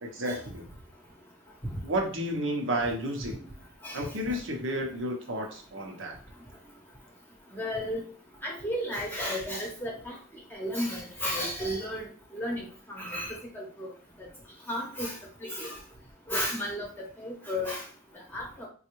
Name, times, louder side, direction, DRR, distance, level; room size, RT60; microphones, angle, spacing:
voice 1, 0.0-0.7 1.8-3.4 3.9-6.2, right 1 dB, 70° right, 2 dB, 0.8 m, -31 dB
voice 2, 7.5-8.0 8.4-10.1 10.5-12.1 12.3-13.9 14.7-15.1 15.5-15.7 16.3-17.8 18.3-18.5, equal, 10° left, -3 dB, 0.9 m, -33 dB
3.8 x 2.3 x 3.0 m, 0.40 s
head